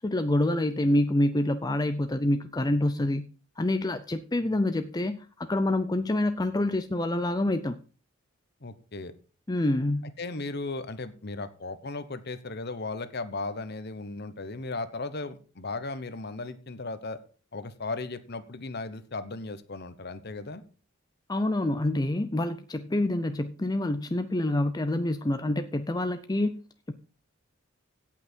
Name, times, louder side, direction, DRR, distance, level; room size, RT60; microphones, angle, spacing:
voice 1, 0.0-3.2 3.6-7.8 9.5-10.1 21.3-26.6 26.9-27.0, left 1 dB, 20° left, 0.5 m, -27 dB
voice 2, 8.6-9.1 10.2-17.2 17.5-20.6, left 3 dB, 50° left, 1.1 m, -36 dB
16.5 x 6.0 x 4.5 m
head